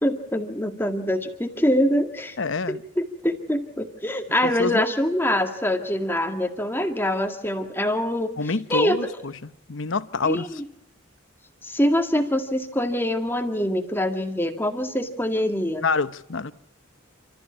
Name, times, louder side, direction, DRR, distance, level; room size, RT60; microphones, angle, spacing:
voice 1, 0.0-2.4 2.7-2.8 3.2-8.3 8.7-9.0 10.2-10.4 11.6-15.8, left 1 dB, 10° left, 2.0 m, -24 dB
voice 2, 2.4-2.8 4.4-4.9 8.4-9.3 9.7-10.6 15.8-16.5, left 4 dB, 80° left, 0.9 m, -27 dB
30.0 x 14.0 x 7.1 m
head